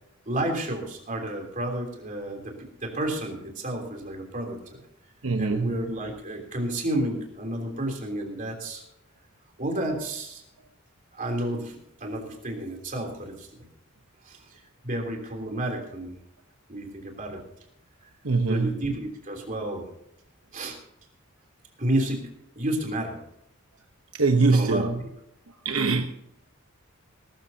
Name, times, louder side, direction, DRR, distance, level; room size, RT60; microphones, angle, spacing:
voice 1, 0.3-2.5 2.8-4.6 5.4-8.8 9.6-10.4 11.1-13.7 14.2-16.2 16.7-17.4 18.5-19.9 20.5-20.8 21.8-22.3 22.5-23.2 24.5-24.9, right 1 dB, 40° right, 1 dB, 3.2 m, -31 dB
voice 2, 5.2-5.9 18.2-18.9 24.2-25.0 25.6-26.0, right 4 dB, 75° right, 5 dB, 1.0 m, -23 dB
19.5 x 13.5 x 2.8 m, 0.76 s
head